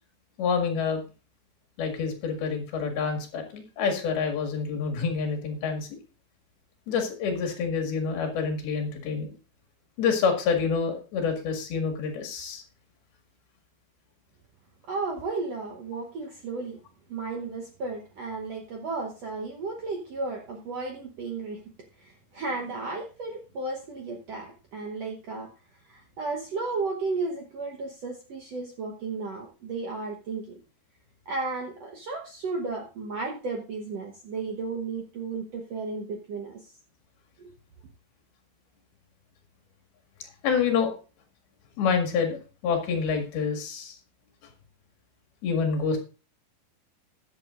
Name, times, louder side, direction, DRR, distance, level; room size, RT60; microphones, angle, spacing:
voice 1, 0.4-1.0 1.8-5.9 6.9-9.3 10.0-12.6 40.2-40.9 41.8-42.4 42.6-44.0 45.4-46.0, left 5 dB, 80° left, 4 dB, 3.8 m, -27 dB
voice 2, 14.9-16.8 17.1-21.6 22.0-25.5 25.9-30.6 31.3-36.7 37.4-37.5, right 3 dB, 65° right, 1 dB, 1.6 m, -34 dB
19.5 x 7.1 x 2.5 m, 0.34 s
omnidirectional pair, 4.3 m